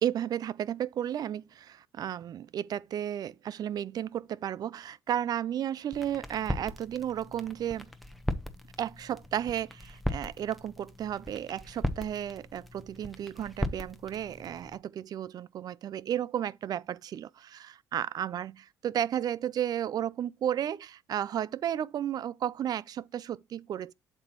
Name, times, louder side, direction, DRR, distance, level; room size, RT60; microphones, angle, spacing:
voice 1, 0.0-7.9 8.8-23.9, right 10 dB, 55° right, 0.4 m, -33 dB
sound 1, 5.9-14.8, equal, ahead, 0.9 m, -38 dB
7.7 x 5.4 x 2.9 m
supercardioid pair, 75°, 8 cm